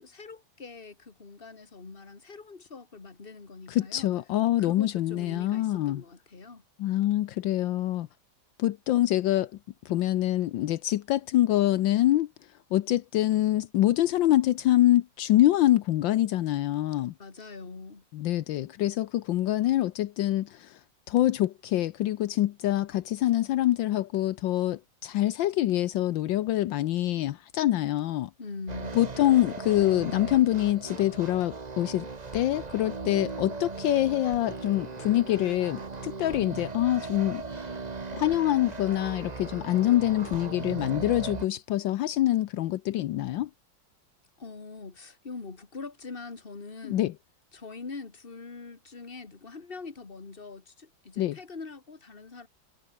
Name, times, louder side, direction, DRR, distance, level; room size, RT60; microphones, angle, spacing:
voice 1, 0.0-4.1 4.6-6.6 17.2-18.0 28.4-29.0 44.4-47.0 47.5-52.5, left 4 dB, 30° left, 2.3 m, -43 dB
voice 2, 3.7-6.0 6.8-8.1 8.6-9.5 9.8-12.3 12.7-17.1 18.1-20.8 21.1-28.3 28.9-32.1 32.3-37.8 38.1-43.5 46.8-47.1 51.2-51.4, left 14 dB, 80° left, 1.4 m, -25 dB
sound 1, 28.7-41.5, right 4 dB, 25° right, 1.2 m, -38 dB
omnidirectional pair, 2.1 m